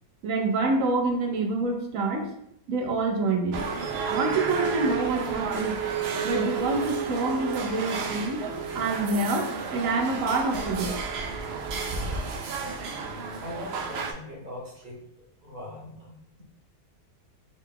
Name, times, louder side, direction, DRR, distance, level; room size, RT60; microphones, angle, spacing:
voice 1, 0.2-2.3 2.7-5.8 6.2-8.4 8.7-11.0, right 3 dB, 65° right, 3 dB, 1.0 m, -27 dB
sound 1, 3.5-14.1, right 5 dB, 80° right, 0.5 m, -31 dB
voice 2, 13.4-15.0 15.4-16.4, left 1 dB, 35° right, -4 dB, 0.9 m, -41 dB
3.8 x 2.2 x 3.7 m, 0.75 s
omnidirectional pair, 1.6 m